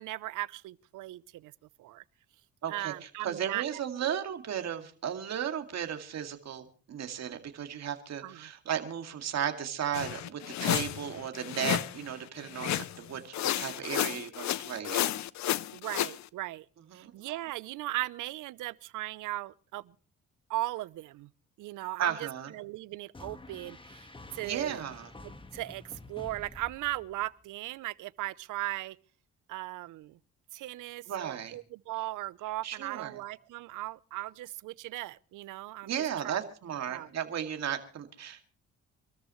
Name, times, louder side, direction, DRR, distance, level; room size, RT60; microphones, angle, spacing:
voice 1, 0.0-1.5 1.8-2.0 2.7-3.6 8.2-8.5 10.6-10.8 12.6-12.9 15.7-16.7 16.9-19.9 20.5-21.3 21.6-22.1 22.5-24.8 25.5-29.0 29.5-30.2 30.5-35.9 36.2-36.4 36.9-37.1, right 17 dB, 85° right, 0.6 m, -38 dB
voice 2, 2.6-15.1 16.9-17.1 22.0-22.5 24.4-25.1 31.1-31.6 32.6-33.2 35.8-38.5, right 9 dB, 60° right, 2.3 m, -35 dB
sound 1, 9.9-12.0 12.5-13.1 13.3-16.2, left 13 dB, 65° left, 0.6 m, -32 dB
sound 2, 23.1-27.4, left 2 dB, 15° left, 1.5 m, -49 dB
26.5 x 13.5 x 3.1 m
cardioid pair, 90°, 30 cm